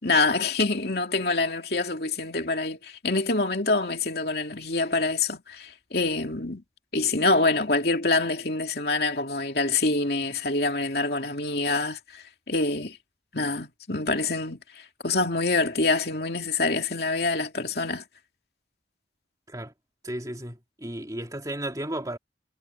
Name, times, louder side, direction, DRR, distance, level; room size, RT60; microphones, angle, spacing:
voice 1, 0.0-6.6 6.9-13.0 13.3-14.6 15.0-18.0, left 3 dB, 60° left, 2.8 m, -26 dB
voice 2, 20.0-22.2, right 1 dB, 20° right, 2.8 m, -34 dB
head